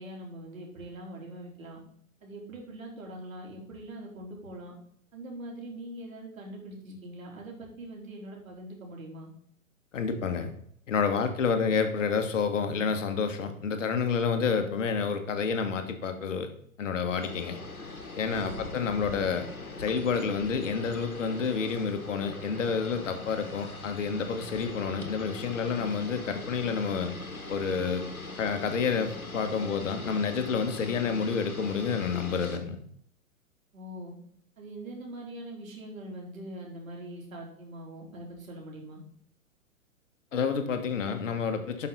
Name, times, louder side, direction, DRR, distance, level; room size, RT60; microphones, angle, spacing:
voice 1, 0.0-1.8 2.2-4.7 5.1-9.3 18.5-18.8 33.7-34.1 34.6-39.0, right 1 dB, 70° right, -1 dB, 3.5 m, -42 dB
voice 2, 9.9-10.5 10.9-16.5 16.8-17.6 18.2-19.5 19.8-27.1 27.5-28.1 28.4-32.8 40.3-41.9, left 5 dB, 60° left, 7 dB, 1.6 m, -29 dB
sound 1, 17.1-32.6, left 3 dB, 90° left, 1.5 m, -41 dB
11.5 x 5.8 x 4.0 m, 0.66 s
figure-of-eight pair, 110°, 42 cm